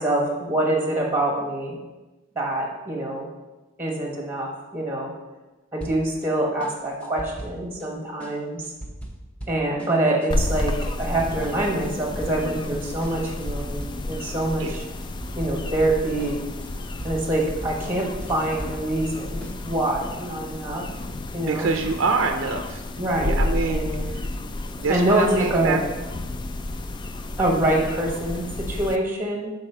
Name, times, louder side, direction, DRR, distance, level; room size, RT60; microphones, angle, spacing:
voice 1, 0.0-1.8 2.3-3.3 3.8-5.1 5.7-8.6 9.5-14.8 15.4-16.4 17.0-20.8 21.3-21.7 23.0-24.1 24.9-25.8 27.4-29.5, right 1 dB, 10° right, -1 dB, 1.2 m, -25 dB
sound 1, 5.8-6.3 6.6-7.9 8.2-11.9 12.2-12.7 13.0-14.3 14.6-19.1 19.4-19.8, right 1 dB, 5° left, 0.7 m, -39 dB
sound 2, 10.3-29.0, left 2 dB, 20° left, 0.3 m, -31 dB
voice 2, 21.4-22.8 23.2-24.2 24.8-25.8, right 4 dB, 70° right, 4 dB, 0.5 m, -25 dB
6.5 x 4.1 x 5.5 m, 1.1 s
head